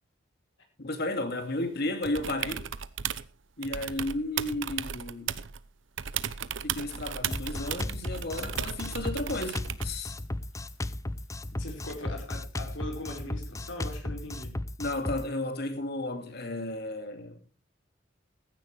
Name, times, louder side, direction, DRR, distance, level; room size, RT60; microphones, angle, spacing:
voice 1, 0.8-2.7 3.6-5.4 6.6-10.2 14.8-17.6, left 1 dB, 60° left, 2.5 m, -33 dB
sound 1, 2.0-3.3 3.6-5.6 6.0-10.0 11.9-12.0, right 8 dB, 85° right, 0.9 m, -35 dB
Drum kit, 7.3-15.3, left 1 dB, 15° left, 0.6 m, -35 dB
voice 2, 11.5-14.6, left 1 dB, 90° left, 5.0 m, -40 dB
15.5 x 14.5 x 3.3 m
head